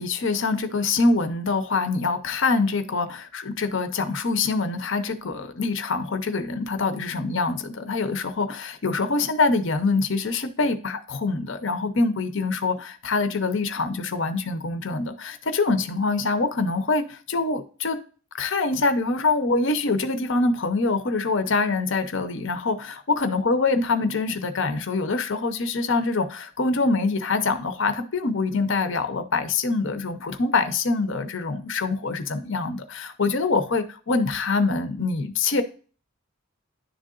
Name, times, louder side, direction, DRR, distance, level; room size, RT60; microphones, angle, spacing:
voice 1, 0.0-18.0 18.3-35.6, left 3 dB, 55° left, 9 dB, 0.7 m, -25 dB
10.5 x 3.7 x 2.4 m, 0.38 s
head